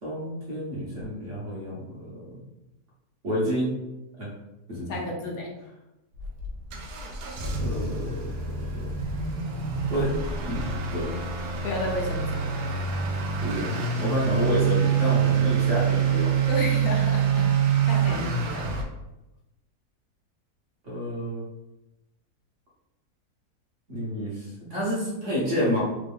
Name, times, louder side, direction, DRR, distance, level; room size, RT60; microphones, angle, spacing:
voice 1, 0.0-2.3 3.2-3.7 4.2-4.3 4.7-5.1 7.6-8.3 8.6-8.9 9.9-10.1 10.5-11.1 13.4-13.7 14.0-16.5 20.8-21.4 23.9-25.8, equal, 50° right, -7 dB, 1.5 m, -29 dB
voice 2, 4.9-5.5 11.6-12.8 13.1-13.2 16.5-17.5 17.8-18.8, left 1 dB, 70° left, 0 dB, 1.1 m, -32 dB
Motor vehicle (road) / Accelerating revving vroom, 6.1-18.8, right 7 dB, 85° right, 1.2 m, -26 dB
3.6 x 2.4 x 3.5 m, 0.96 s
omnidirectional pair, 1.7 m